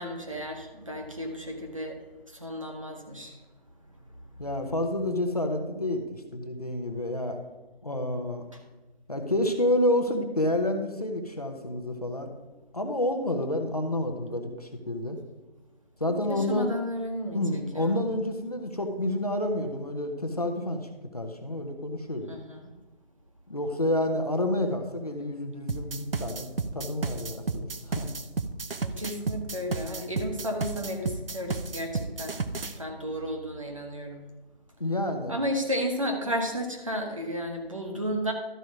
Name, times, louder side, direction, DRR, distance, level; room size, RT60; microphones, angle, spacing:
voice 1, 0.0-2.0 2.3-3.4 16.0-18.0 22.3-22.6 28.8-34.2 35.3-38.3, equal, 35° right, 2 dB, 1.3 m, -33 dB
voice 2, 4.4-7.4 7.8-8.5 9.1-12.3 12.7-15.2 16.0-16.7 17.3-22.3 23.5-26.5 26.7-28.1 34.8-35.3, left 1 dB, 40° left, 4 dB, 1.0 m, -29 dB
sound 1, 25.7-32.7, right 4 dB, 65° right, 0.7 m, -32 dB
12.5 x 4.8 x 6.1 m, 1.1 s
figure-of-eight pair, 180°, 30 cm